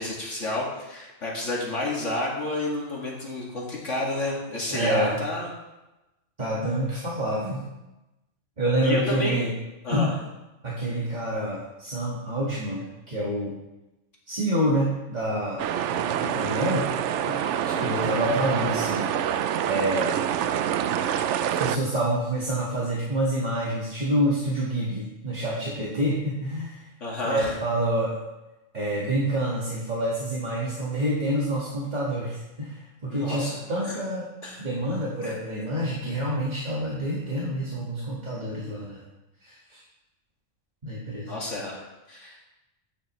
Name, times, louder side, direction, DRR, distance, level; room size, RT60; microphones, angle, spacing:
voice 1, 0.0-5.5 8.8-9.5 9.8-10.1 17.6-17.9 27.0-27.5 33.1-33.9 34.4-34.6 35.2-35.3 41.2-42.4, left 2 dB, 70° left, -4 dB, 2.5 m, -30 dB
voice 2, 4.7-5.2 6.4-7.6 8.6-9.5 9.9-10.2 10.6-13.6 14.3-15.6 15.9-16.9 17.2-17.4 17.8-19.1 19.7-20.1 21.5-26.8 27.2-28.2 28.7-34.3 34.6-39.0 39.4-39.8 40.8-41.3, right 1 dB, 35° right, -6 dB, 1.9 m, -27 dB
sound 1, 15.6-21.8, right 9 dB, 70° right, 0.9 m, -26 dB
13.5 x 9.5 x 3.1 m, 1.0 s
omnidirectional pair, 1.3 m